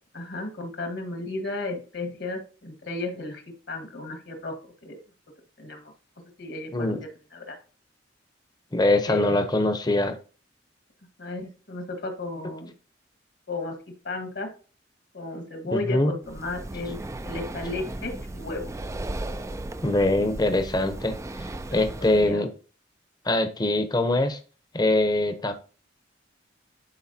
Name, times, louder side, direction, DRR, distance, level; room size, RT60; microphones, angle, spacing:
voice 1, 0.1-5.0 5.6-5.9 6.4-7.6 9.1-9.4 11.2-12.7 13.5-13.7 14.0-14.5 15.1-17.0 17.2-18.7 21.7-21.8 22.1-22.4, left 2 dB, 65° left, 1.7 m, -34 dB
voice 2, 8.7-10.2 15.7-16.1 19.8-21.2 21.7-22.5 23.2-24.4 24.7-25.5, left 2 dB, 20° left, 0.8 m, -23 dB
Breathing, 16.2-22.4, right 2 dB, 15° right, 0.3 m, -36 dB
11.5 x 4.6 x 2.8 m
head